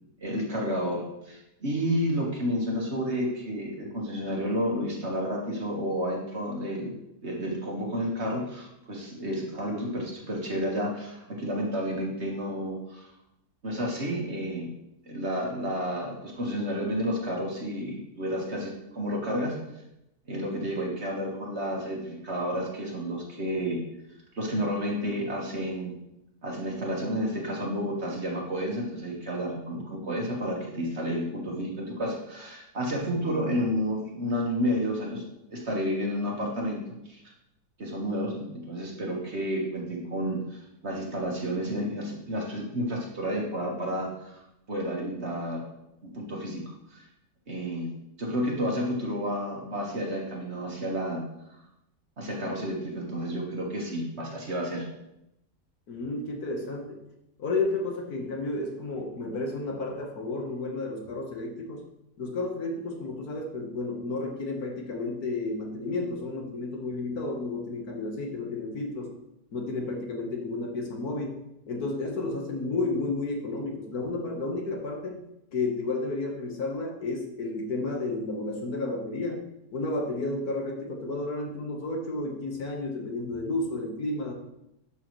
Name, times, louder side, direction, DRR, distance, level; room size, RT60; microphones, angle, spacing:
voice 1, 0.2-6.9 7.2-13.0 13.6-14.7 15.1-19.6 20.3-23.8 24.3-26.0 26.4-35.2 35.5-37.2 37.8-44.4 44.7-45.6 46.0-46.6 46.9-47.1 47.5-47.9 48.2-51.2 52.2-54.9, equal, 40° right, -1 dB, 1.8 m, -31 dB
voice 2, 55.9-57.0 57.4-61.8 62.2-69.1 69.5-71.4 71.7-75.2 75.5-84.3, left 2 dB, 65° left, 1 dB, 1.8 m, -32 dB
11.5 x 6.5 x 3.1 m, 0.85 s
omnidirectional pair, 1.8 m